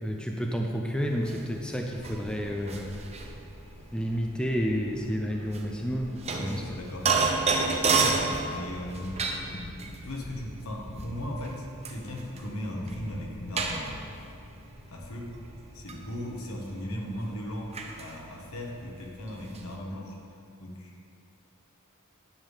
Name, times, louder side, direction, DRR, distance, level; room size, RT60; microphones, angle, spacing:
voice 1, 0.0-3.0 3.9-6.6, equal, 5° left, 1 dB, 0.4 m, -30 dB
Toilet flush, 1.0-10.1, equal, 85° left, 1.6 m, -50 dB
sound 1, 1.1-19.8, right 4 dB, 30° right, 0.7 m, -32 dB
Thunder, 3.6-17.0, equal, 30° left, 1.0 m, -46 dB
voice 2, 6.3-7.1 8.5-9.3 10.0-14.1 14.9-15.4 15.7-20.9, left 1 dB, 70° left, -1 dB, 1.4 m, -37 dB
10.5 x 3.7 x 7.3 m, 2.6 s
head